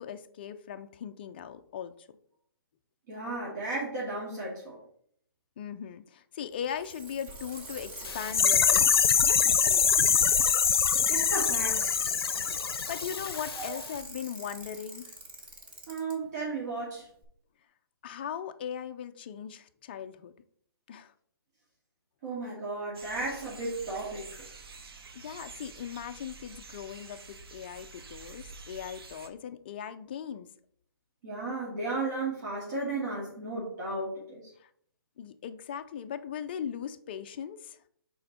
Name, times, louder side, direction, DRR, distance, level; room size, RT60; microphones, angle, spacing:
voice 1, 0.0-2.1 5.6-8.9 9.2-10.1 12.9-15.1 18.0-20.3 20.9-21.1 25.1-30.5 34.6-34.7 35.2-37.8, left 8 dB, 25° left, 8 dB, 0.4 m, -39 dB
voice 2, 3.1-4.8 11.1-12.0 13.5-13.8 15.9-17.1 22.2-24.3 31.2-34.4, right 2 dB, 45° right, -6 dB, 2.3 m, -34 dB
Bicycle, 6.5-16.1 17.2-17.3, right 2 dB, 10° right, 0.8 m, -43 dB
sound 1, 8.0-13.7 13.9-14.0, left 7 dB, 85° left, 0.5 m, -24 dB
sound 2, 22.9-29.3, right 4 dB, 75° right, 1.1 m, -48 dB
6.7 x 4.4 x 4.1 m, 0.64 s
hypercardioid pair, 165°, 13 cm